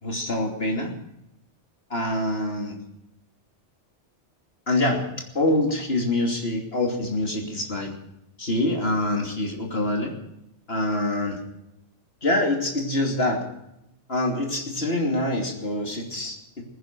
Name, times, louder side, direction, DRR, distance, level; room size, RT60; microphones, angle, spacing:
voice 1, 0.0-0.9 1.9-2.8 4.7-5.1 5.3-7.9 8.4-10.1 10.7-11.4 12.2-13.4 14.1-16.6, left 1 dB, 55° left, 1 dB, 3.1 m, -25 dB
21.5 x 10.0 x 6.1 m, 0.83 s
omnidirectional pair, 1.2 m